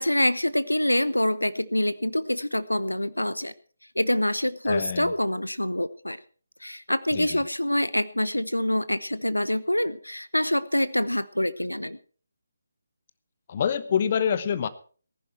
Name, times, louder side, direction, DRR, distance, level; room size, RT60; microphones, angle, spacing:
voice 1, 0.0-3.5 4.0-6.2 6.6-12.0, left 1 dB, 85° left, 17 dB, 0.8 m, -26 dB
voice 2, 4.7-5.1 7.1-7.4 13.5-14.7, left 7 dB, 35° left, 14 dB, 1.1 m, -26 dB
19.0 x 11.0 x 4.5 m, 0.41 s
figure-of-eight pair, 150°, 0 cm